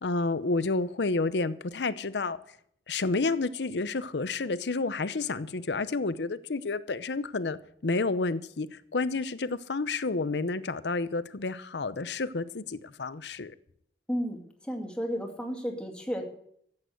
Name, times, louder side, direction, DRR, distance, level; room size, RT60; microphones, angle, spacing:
voice 1, 0.0-2.4 2.9-13.5, left 3 dB, 70° left, 0.7 m, -30 dB
voice 2, 14.1-16.3, equal, 5° left, 2.3 m, -33 dB
14.0 x 8.8 x 7.8 m
head